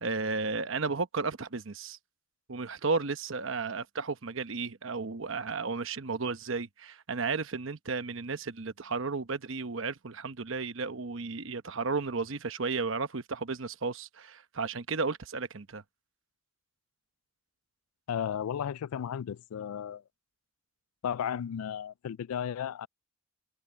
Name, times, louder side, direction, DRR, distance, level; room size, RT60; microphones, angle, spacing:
voice 1, 0.0-2.0 2.5-15.8, right 4 dB, 65° right, 1.0 m, -33 dB
voice 2, 18.1-20.0 21.0-22.9, left 8 dB, 85° left, 0.3 m, -34 dB
head